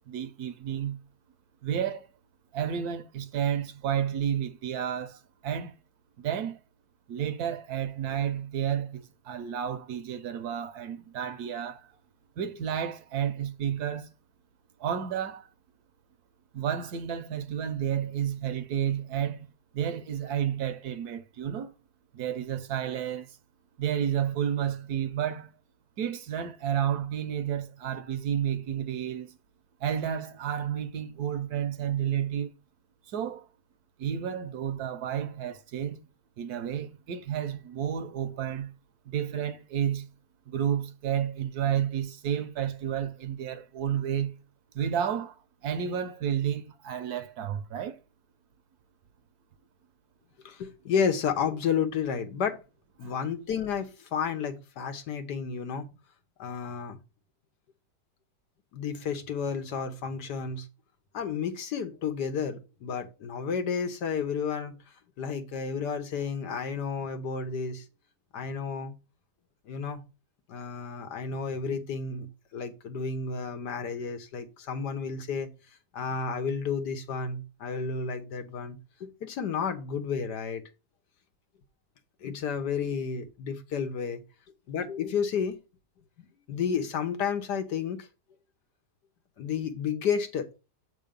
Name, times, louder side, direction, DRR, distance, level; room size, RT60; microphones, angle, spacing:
voice 1, 0.1-1.0 1.6-2.1 2.5-5.8 6.2-6.6 7.1-11.9 12.4-14.1 14.8-15.5 16.5-19.5 19.7-21.7 22.1-23.4 23.8-25.5 26.0-29.4 29.8-32.5 33.1-33.5 34.0-36.0 36.4-38.7 39.1-40.1 40.5-44.3 44.7-48.0 53.0-53.1, right 9 dB, 75° right, 1.2 m, -31 dB
voice 2, 50.4-52.6 53.0-55.9 56.4-57.0 58.7-60.7 61.1-64.8 65.2-67.9 68.3-68.9 69.6-70.0 70.5-72.3 72.5-75.5 75.9-80.6 82.2-84.2 84.7-85.6 86.2-88.1 89.4-90.5, left 6 dB, 85° left, 1.7 m, -31 dB
7.6 x 3.7 x 5.1 m
omnidirectional pair, 1.7 m